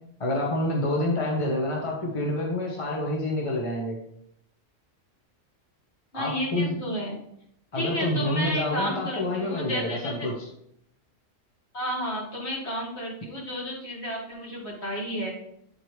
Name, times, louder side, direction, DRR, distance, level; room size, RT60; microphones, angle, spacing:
voice 1, 0.2-4.0 6.1-6.8 7.7-10.3, left 1 dB, 25° left, -3 dB, 1.3 m, -27 dB
voice 2, 6.1-7.2 7.7-10.3 11.7-15.3, equal, 55° left, -3 dB, 2.3 m, -32 dB
8.6 x 4.6 x 3.3 m, 0.73 s
omnidirectional pair, 1.3 m